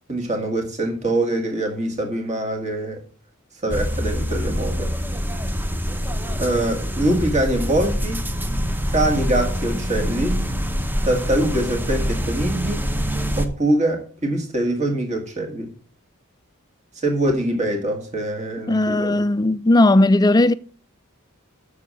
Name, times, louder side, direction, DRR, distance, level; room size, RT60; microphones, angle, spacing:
voice 1, 0.1-3.0 3.6-4.9 6.4-8.3 8.9-10.4 11.0-12.9 13.4-15.7 17.0-19.1, right 1 dB, 30° right, 1.9 m, -23 dB
sound 1, 3.7-13.5, equal, 10° right, 0.8 m, -25 dB
voice 2, 18.7-20.5, left 2 dB, 20° left, 0.4 m, -16 dB
7.0 x 6.9 x 7.5 m
head